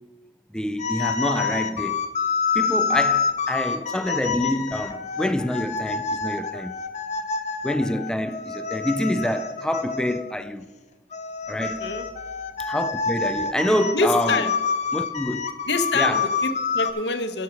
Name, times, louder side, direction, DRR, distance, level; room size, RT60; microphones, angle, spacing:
voice 1, 0.5-2.1 2.5-6.8 7.6-10.7 11.5-11.9 12.6-14.5 14.9-15.5 15.9-16.3, left 1 dB, 5° left, 0.3 m, -26 dB
sound 1, 0.8-10.4 11.1-16.9, left 5 dB, 40° left, 0.8 m, -27 dB
voice 2, 13.9-14.5 15.7-17.4, left 3 dB, 65° left, 1.0 m, -26 dB
11.5 x 6.4 x 5.7 m
head